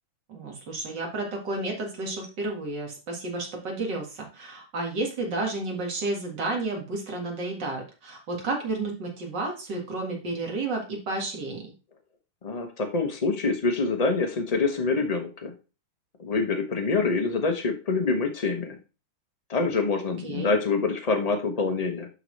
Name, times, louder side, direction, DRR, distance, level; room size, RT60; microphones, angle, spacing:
voice 1, 0.3-11.6 20.2-20.5, right 2 dB, 60° right, 1 dB, 2.4 m, -31 dB
voice 2, 12.4-15.5 16.2-18.8 19.5-22.1, left 4 dB, 40° left, 5 dB, 0.5 m, -26 dB
11.5 x 4.0 x 3.2 m, 0.32 s
omnidirectional pair, 2.3 m